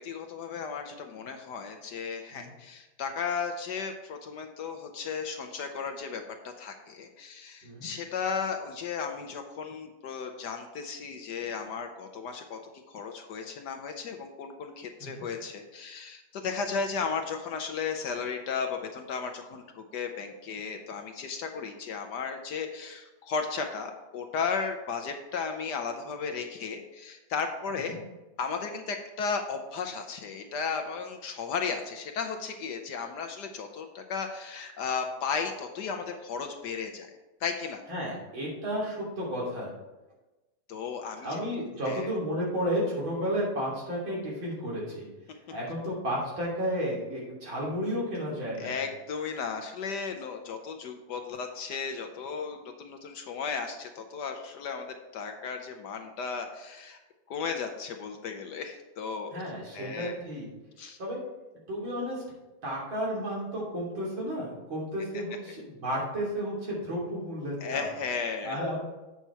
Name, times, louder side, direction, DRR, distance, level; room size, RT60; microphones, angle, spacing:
voice 1, 0.0-12.6 12.9-28.0 28.4-37.1 37.4-37.8 40.7-41.4 41.9-42.1 48.6-57.0 57.3-59.4 59.7-60.2 60.8-61.0 67.6-68.6, left 5 dB, 65° left, 5 dB, 1.2 m, -35 dB
voice 2, 37.9-39.7 41.2-45.1 45.5-48.8 59.3-60.5 61.0-61.2 61.7-62.2 62.6-67.9 68.4-68.8, equal, 75° right, -5 dB, 3.8 m, -32 dB
8.2 x 6.0 x 4.4 m, 1.1 s
omnidirectional pair, 2.2 m